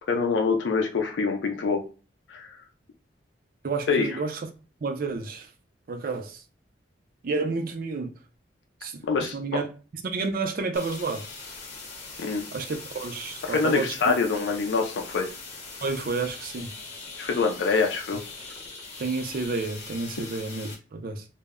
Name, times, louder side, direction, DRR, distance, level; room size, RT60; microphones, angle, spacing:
voice 1, 0.1-1.8 2.3-2.5 3.9-4.1 9.1-9.3 12.2-12.5 13.5-15.3 17.2-18.2, left 4 dB, 75° left, 0.4 m, -25 dB
voice 2, 3.6-4.5 4.8-5.5 5.9-6.4 7.2-8.1 8.8-9.7 10.0-11.3 12.5-14.1 15.8-16.7 19.0-21.2, right 4 dB, 50° right, 0.4 m, -30 dB
sound 1, 10.7-20.7, left 3 dB, 35° left, 0.8 m, -41 dB
2.0 x 2.0 x 3.5 m
head